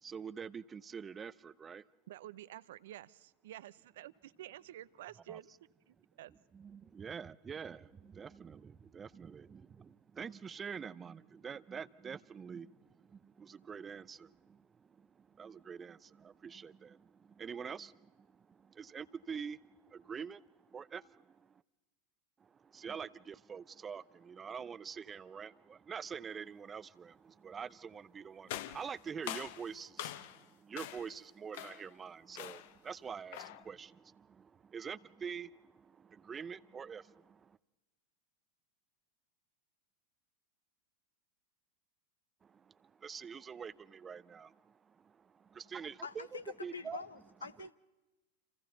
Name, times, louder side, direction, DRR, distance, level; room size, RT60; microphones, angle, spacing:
voice 1, 0.0-1.8 5.3-5.4 6.3-21.6 22.4-37.6 42.4-47.0 47.6-47.7, right 6 dB, 20° right, 0.7 m, -46 dB
voice 2, 2.1-5.5 5.9-6.3, right 13 dB, 65° right, 0.7 m, -50 dB
sound 1, 28.5-30.5 30.8-31.2 31.5-31.9 32.4-32.8 33.3-33.7, left 12 dB, 60° left, 0.9 m, -44 dB
voice 3, 46.0-47.7, left 5 dB, 85° left, 0.9 m, -45 dB
29.5 x 28.0 x 4.0 m
figure-of-eight pair, 90°, 0 cm